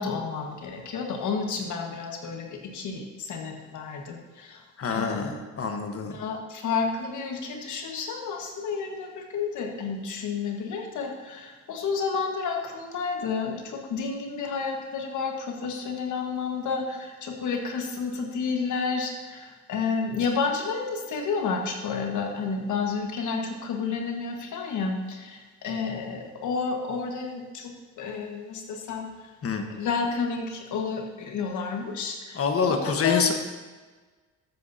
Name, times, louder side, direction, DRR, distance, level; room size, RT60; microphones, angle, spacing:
voice 1, 0.0-4.6 4.9-5.4 6.1-29.1 29.7-32.4 32.7-33.3, left 5 dB, 75° left, 2 dB, 1.6 m, -31 dB
voice 2, 4.8-6.2 29.4-29.6 32.3-33.3, left 5 dB, 50° left, 5 dB, 1.3 m, -26 dB
13.0 x 8.2 x 2.8 m, 1.3 s
cardioid pair, 90°, 30 cm